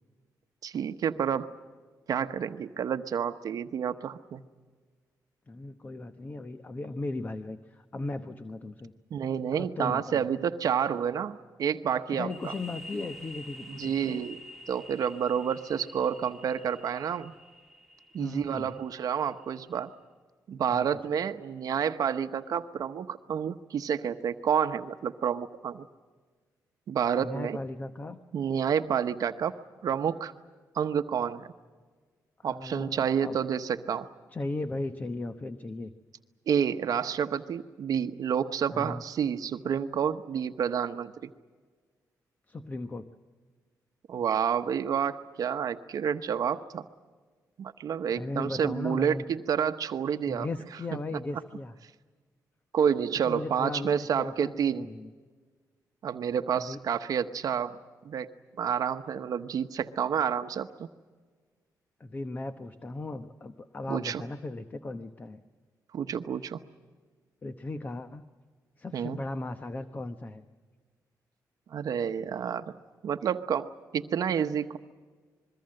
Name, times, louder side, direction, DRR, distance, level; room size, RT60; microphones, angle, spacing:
voice 1, 0.6-1.5 2.1-4.4 9.1-12.5 13.8-14.4 14.7-17.3 18.1-19.9 20.5-25.9 26.9-27.6 28.3-29.6 29.8-30.3 30.7-31.5 32.4-34.1 36.5-41.3 44.1-46.8 47.6-50.5 52.7-54.9 56.0-57.8 58.0-60.9 63.9-64.2 65.9-66.6 68.9-69.2 71.7-72.7 73.0-74.8, right 8 dB, 65° right, 9 dB, 1.0 m, -29 dB
voice 2, 5.5-8.9 9.5-10.3 12.1-13.9 18.2-18.8 20.7-21.2 27.2-28.2 32.4-33.4 34.3-35.9 38.7-39.0 42.5-43.1 48.1-49.2 50.3-51.8 53.2-55.1 56.5-56.8 62.0-65.4 67.4-68.3 68.8-70.4, left 2 dB, 25° left, 10 dB, 0.9 m, -37 dB
sound 1, 12.3-19.8, left 1 dB, 5° left, 2.7 m, -48 dB
26.5 x 22.0 x 7.7 m, 1.4 s
cardioid pair, 135°, 7 cm